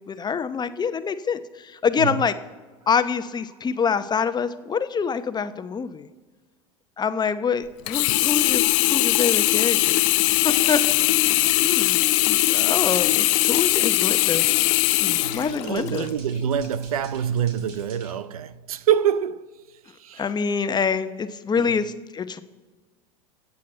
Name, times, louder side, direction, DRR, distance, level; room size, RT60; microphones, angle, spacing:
voice 1, 0.1-2.3 2.9-6.1 7.0-10.0 10.4-10.8 11.1-12.0 12.3-14.4 15.0-16.1 20.2-22.4, left 6 dB, 25° left, 0.8 m, -26 dB
Sink (filling or washing), 7.9-16.1 16.6-16.7, left 18 dB, 60° left, 0.6 m, -20 dB
sound 1, 11.4-18.1, right 4 dB, 60° right, 2.7 m, -49 dB
voice 2, 15.2-19.5 20.0-20.3 21.5-21.8, right 9 dB, 80° right, 0.6 m, -26 dB
24.5 x 8.5 x 4.4 m
hypercardioid pair, 85°, 18 cm